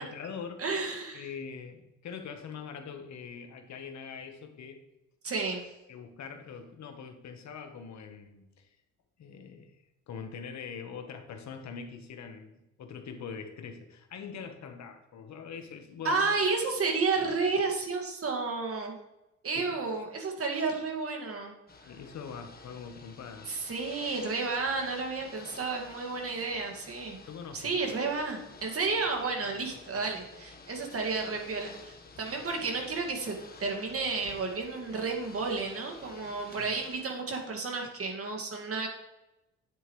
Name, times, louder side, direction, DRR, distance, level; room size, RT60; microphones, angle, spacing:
voice 1, 0.0-0.6 1.1-4.8 5.9-8.7 9.2-9.7 10.1-16.3 19.5-19.7 21.8-23.5 27.2-27.8 29.3-30.0 36.5-36.7, left 6 dB, 65° left, 6 dB, 1.3 m, -43 dB
voice 2, 0.6-1.3 5.2-5.6 16.0-19.0 19.4-21.5 23.5-27.2 27.5-38.9, right 4 dB, 50° right, 2 dB, 2.1 m, -31 dB
Ocean / Boat Water vehicle, 21.7-37.0, left 4 dB, 30° left, 1.3 m, -51 dB
9.1 x 7.8 x 3.2 m, 0.95 s
cardioid pair, 90°, 30 cm